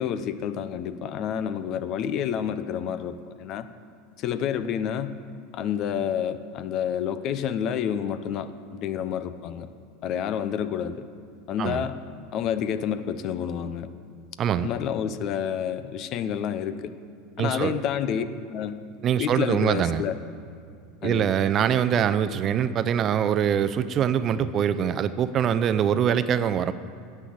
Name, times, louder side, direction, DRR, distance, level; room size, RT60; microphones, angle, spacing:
voice 1, 0.0-3.7 4.2-5.2 5.5-9.7 10.0-11.0 11.5-12.0 12.3-13.9 14.6-16.9 17.4-18.8 19.2-20.2 21.0-21.3 24.4-24.5, left 8 dB, 50° left, 12 dB, 0.7 m, -29 dB
voice 2, 17.4-17.7 19.0-20.0 21.0-26.7, right 8 dB, 40° right, 13 dB, 0.5 m, -23 dB
9.9 x 7.6 x 8.7 m, 2.3 s
hypercardioid pair, 95°, 0 cm